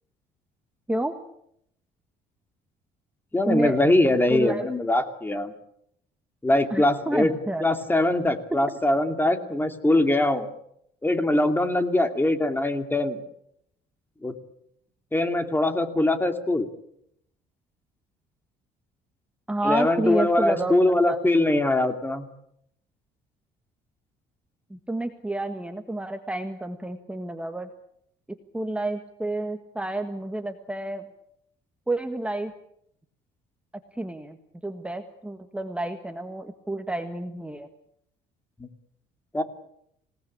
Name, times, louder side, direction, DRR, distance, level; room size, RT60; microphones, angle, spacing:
voice 1, 3.3-5.5 6.4-10.5 11.0-13.2 14.2-14.3 15.1-16.7 19.6-22.3 38.6-38.7 39.3-39.4, left 1 dB, 10° left, 7 dB, 2.7 m, -22 dB
voice 2, 4.3-4.7 6.7-7.6 19.5-21.2 24.7-27.7 28.5-31.1 31.9-32.5 33.9-34.4 34.6-37.7, right 2 dB, 5° right, 6 dB, 1.6 m, -30 dB
27.0 x 18.5 x 8.7 m, 0.75 s
cardioid pair, 110°, 17 cm